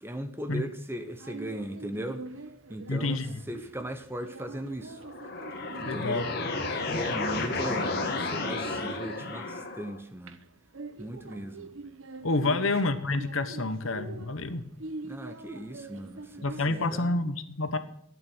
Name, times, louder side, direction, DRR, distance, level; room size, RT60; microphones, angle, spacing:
voice 1, 0.0-2.2 2.7-3.2 3.5-5.0 5.8-6.3 6.9-10.4 11.0-11.7 12.4-12.6 14.4-14.5 15.0-16.3 16.7-17.1, right 1 dB, 10° right, 1.0 m, -38 dB
sound 1, 1.0-17.0, right 2 dB, 70° right, 1.0 m, -45 dB
voice 2, 2.9-3.4 5.8-6.3 12.2-14.6 16.4-17.8, left 2 dB, 75° left, 1.2 m, -28 dB
sound 2, 5.0-10.0, left 3 dB, 50° left, 1.8 m, -32 dB
12.5 x 9.3 x 6.3 m
head